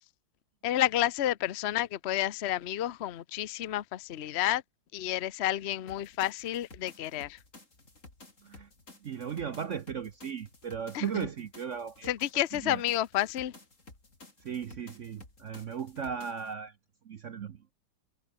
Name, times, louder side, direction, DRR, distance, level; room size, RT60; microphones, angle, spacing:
voice 1, 0.6-4.6 4.9-7.4 10.9-11.3 12.1-13.5, left 13 dB, 80° left, 0.5 m, -30 dB
sound 1, 5.9-16.5, left 2 dB, 35° left, 5.0 m, -54 dB
voice 2, 9.0-12.1 12.5-12.8 14.4-16.7 17.0-17.6, right 7 dB, 65° right, 0.7 m, -36 dB
omnidirectional pair, 2.3 m